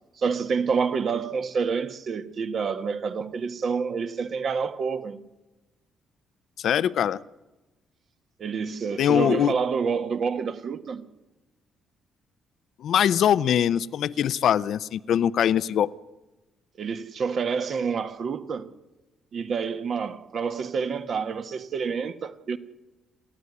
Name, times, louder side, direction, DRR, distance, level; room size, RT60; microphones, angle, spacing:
voice 1, 0.2-5.2 8.4-11.0 16.8-18.7 19.3-22.6, right 5 dB, 50° right, 1.4 m, -28 dB
voice 2, 6.6-7.2 9.0-9.5 12.8-15.9, left 9 dB, 65° left, 0.7 m, -22 dB
28.5 x 11.0 x 9.7 m
cardioid pair, 115°, 0 cm